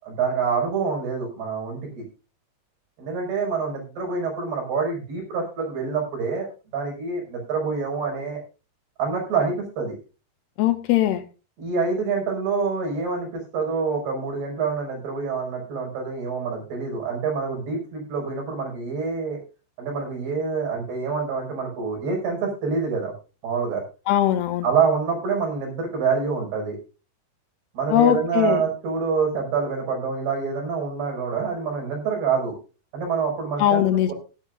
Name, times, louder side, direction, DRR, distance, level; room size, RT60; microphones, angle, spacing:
voice 1, 0.0-2.0 3.0-6.5 6.7-8.4 9.0-10.0 11.6-19.4 19.8-23.1 23.4-23.8 24.6-26.8 27.7-32.6 32.9-34.1, right 5 dB, 65° right, 1 dB, 7.5 m, -26 dB
voice 2, 10.6-11.2 24.1-24.7 27.9-28.6 33.6-34.1, left 12 dB, 80° left, 11 dB, 2.6 m, -20 dB
16.5 x 13.0 x 2.5 m, 0.32 s
omnidirectional pair, 4.9 m